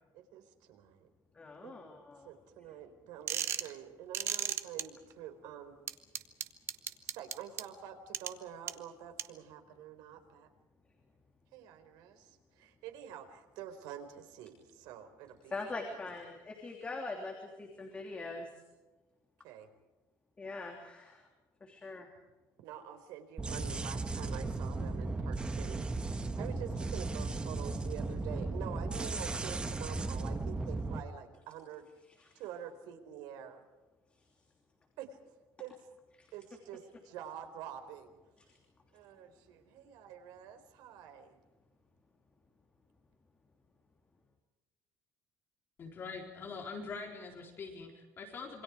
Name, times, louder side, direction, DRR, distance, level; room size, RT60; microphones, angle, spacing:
voice 1, 0.1-1.1 1.6-1.7 2.2-5.8 7.0-10.5 11.5-15.6 19.4-19.7 22.6-25.8 26.4-31.9 32.4-33.6 35.0-35.2 35.6-35.7 36.3-38.1 38.9-41.4, right 9 dB, 80° right, 7 dB, 4.1 m, -47 dB
voice 2, 1.4-2.3 15.5-18.5 20.4-21.2 21.6-22.1 36.2-36.3, left 3 dB, 15° left, 2 dB, 3.1 m, -42 dB
sound 1, 3.3-3.7 4.1-4.8 5.9-7.6 8.1-8.3 8.7-8.8 9.2-9.3, right 9 dB, 40° right, 1.3 m, -33 dB
sound 2, 23.4-31.0, right 3 dB, 15° right, 1.3 m, -36 dB
voice 3, 45.8-48.6, left 4 dB, 30° left, 1 dB, 4.1 m, -43 dB
27.5 x 24.5 x 4.9 m, 1.2 s
cardioid pair, 165°, 7 cm